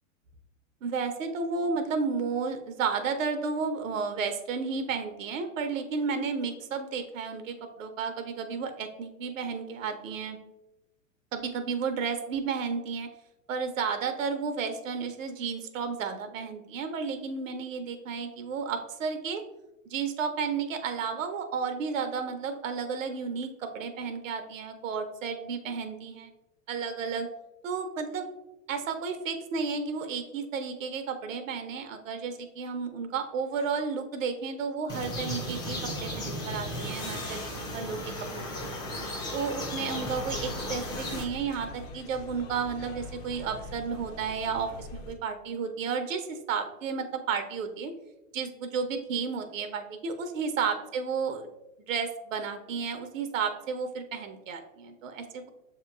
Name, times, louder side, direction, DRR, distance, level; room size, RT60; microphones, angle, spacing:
voice 1, 0.8-10.4 11.3-13.1 13.5-19.4 19.9-26.3 26.7-27.3 27.6-28.3 28.7-38.8 39.3-47.9 48.3-51.5 51.9-55.5, right 5 dB, 75° right, 7 dB, 0.6 m, -32 dB
sound 1, 34.9-41.2, left 1 dB, 10° left, 0.3 m, -35 dB
sound 2, 39.9-45.1, left 2 dB, 55° left, 0.7 m, -43 dB
6.5 x 2.8 x 2.3 m, 0.98 s
hypercardioid pair, 115°, 40 cm